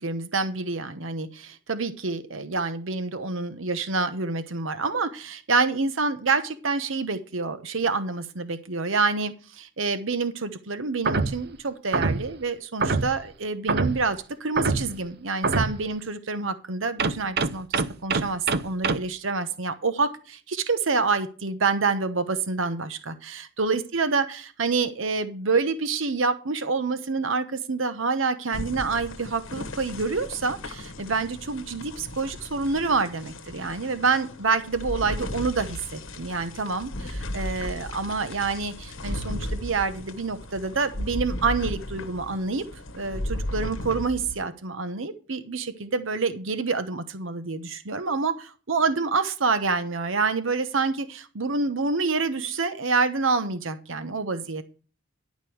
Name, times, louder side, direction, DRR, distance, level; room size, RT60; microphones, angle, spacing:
voice 1, 0.0-42.6 42.9-54.6, right 4 dB, 70° right, 11 dB, 1.0 m, -27 dB
sound 1, 11.1-11.4 11.9-12.3 12.8-13.2 13.7-14.1 14.6-15.0 15.4-15.8 17.0-19.0, right 4 dB, 55° right, 0.7 m, -24 dB
sound 2, 28.5-44.4, left 1 dB, 70° left, 1.2 m, -35 dB
11.5 x 5.2 x 7.7 m, 0.37 s
head